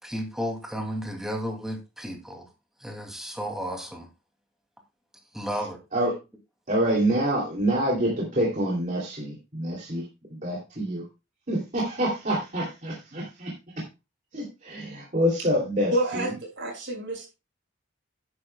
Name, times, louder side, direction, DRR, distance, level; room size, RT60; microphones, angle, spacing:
voice 1, 0.0-2.5 2.8-4.1 5.3-5.8, equal, ahead, 2 dB, 2.4 m, -33 dB
voice 2, 5.5-6.1 6.7-10.0 10.3-11.0 11.5-13.5 14.3-16.4, right 1 dB, 40° right, -4 dB, 2.8 m, -27 dB
voice 3, 15.9-17.3, right 1 dB, 65° right, 2 dB, 5.3 m, -29 dB
11.5 x 10.0 x 2.2 m, 0.27 s
head